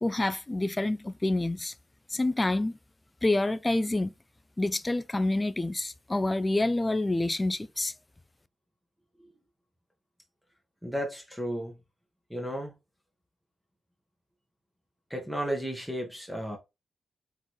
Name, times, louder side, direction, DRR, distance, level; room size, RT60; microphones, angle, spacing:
voice 1, 0.0-1.7 2.1-2.8 3.2-4.1 4.6-7.9, left 2 dB, 20° left, 0.4 m, -27 dB
voice 2, 10.8-11.8 12.3-12.7 15.1-16.6, equal, 5° right, 1.3 m, -33 dB
3.9 x 3.9 x 3.1 m
cardioid pair, 80°, 0 cm